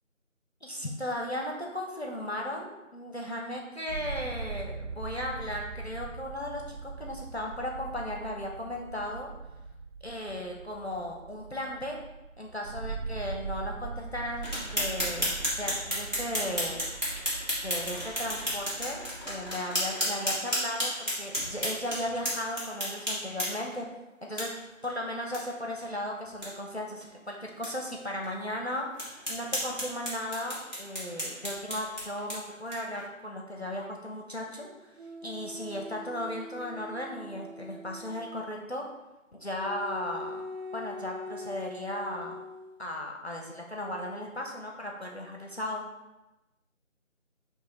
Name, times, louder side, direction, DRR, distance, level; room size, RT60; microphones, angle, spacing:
voice 1, 0.6-9.3 10.0-12.0 12.4-15.3 15.6-16.8 17.6-23.9 24.2-24.5 24.8-28.9 29.3-34.9 35.2-38.9 39.3-40.4 40.7-42.4 42.8-45.9, left 1 dB, 55° left, 0 dB, 0.6 m, -36 dB
sound 1, 3.9-19.5, right 4 dB, 70° right, 0.8 m, -41 dB
sound 2, 14.4-23.8 24.4-24.5 24.8-24.9 25.3-25.4 25.8-25.9 26.3-26.5 27.0-27.1 27.6-27.7 28.2-28.3 29.0-33.0, equal, 35° right, 1.4 m, -33 dB
sound 3, 35.0-38.5 39.6-42.7 43.8-44.2, left 1 dB, 50° right, 1.2 m, -43 dB
4.6 x 2.8 x 3.9 m, 1.0 s
figure-of-eight pair, 180°, 40 cm